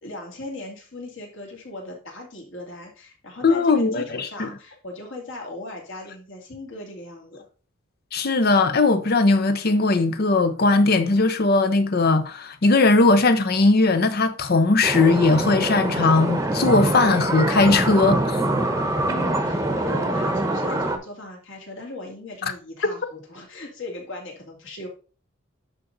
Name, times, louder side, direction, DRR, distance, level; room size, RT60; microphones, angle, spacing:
voice 1, 0.0-7.5 19.0-24.9, left 2 dB, 60° left, 2.6 m, -38 dB
voice 2, 3.4-4.5 8.1-18.4, left 3 dB, 45° left, 0.7 m, -19 dB
sound 1, 14.8-21.0, right 1 dB, 15° right, 0.9 m, -24 dB
10.5 x 3.8 x 4.0 m
head